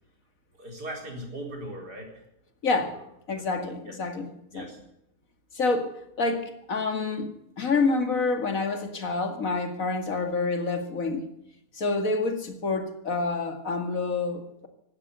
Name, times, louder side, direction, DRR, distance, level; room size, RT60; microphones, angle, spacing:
voice 1, 0.6-2.2 3.4-3.6 3.8-3.9 4.5-4.8, right 1 dB, 80° right, 1 dB, 5.0 m, -39 dB
voice 2, 2.6-3.0 3.3-4.7 5.5-5.9 6.2-7.3 7.6-11.2 11.7-14.7, left 3 dB, 55° left, 6 dB, 2.6 m, -27 dB
17.0 x 12.5 x 6.8 m, 0.81 s
omnidirectional pair, 1.7 m